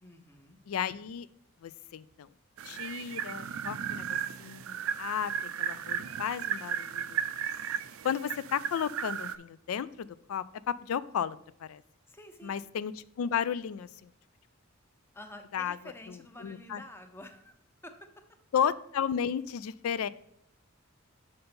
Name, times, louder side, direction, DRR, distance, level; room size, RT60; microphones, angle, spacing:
voice 1, 0.0-0.6 12.1-12.6 15.1-17.5 17.8-17.9, left 1 dB, 10° left, 6 dB, 0.7 m, -49 dB
voice 2, 0.7-1.3 1.6-2.3 2.6-7.2 8.0-11.8 12.4-12.9 13.2-14.1 15.5-15.8 16.1-16.8 18.5-20.1, left 8 dB, 80° left, 17 dB, 0.3 m, -33 dB
sound 1, 2.6-9.4, right 8 dB, 70° right, 0.4 m, -35 dB
6.6 x 5.4 x 4.3 m, 0.76 s
head